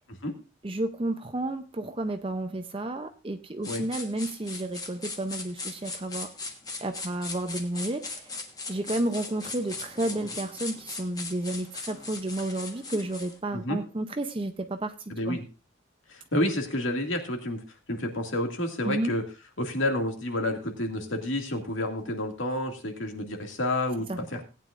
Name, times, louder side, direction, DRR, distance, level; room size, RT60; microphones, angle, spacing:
voice 1, 0.6-6.3 6.8-8.3 8.7-15.4 18.8-19.1 24.1-24.2, right 1 dB, 25° right, 8 dB, 0.6 m, -31 dB
sound 1, 3.6-13.4, left 3 dB, 20° left, 1.2 m, -39 dB
voice 2, 15.1-15.4 16.1-17.6 17.9-19.2 19.6-24.4, left 1 dB, 70° left, 4 dB, 2.2 m, -29 dB
18.5 x 9.3 x 2.5 m, 0.29 s
head